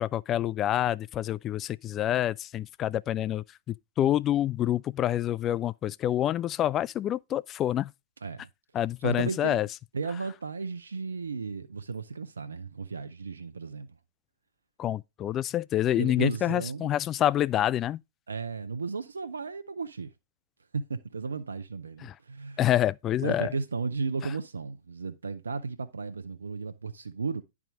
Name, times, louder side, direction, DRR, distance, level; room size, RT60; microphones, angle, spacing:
voice 1, 0.0-7.9 8.7-9.7 14.8-18.0 22.0-22.1 22.6-23.5, left 12 dB, 30° left, 0.3 m, -27 dB
voice 2, 9.0-9.7 9.9-13.9 16.0-16.9 18.3-20.1 20.7-22.6 23.2-27.4, right 4 dB, 85° right, 0.6 m, -34 dB
10.5 x 4.9 x 3.5 m
hypercardioid pair, 110°, 0 cm